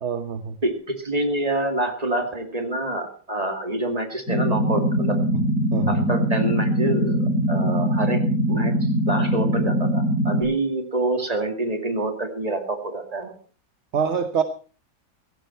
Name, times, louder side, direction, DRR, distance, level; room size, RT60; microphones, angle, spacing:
voice 1, 0.0-0.6 5.7-6.0 13.9-14.4, right 6 dB, 45° right, 9 dB, 1.1 m, -25 dB
voice 2, 0.6-5.2 5.9-8.2 8.5-13.4, right 2 dB, 20° right, 4 dB, 2.4 m, -27 dB
sound 1, 4.3-10.4, equal, 45° left, 7.6 m, -22 dB
17.0 x 15.0 x 4.4 m, 0.40 s
omnidirectional pair, 2.0 m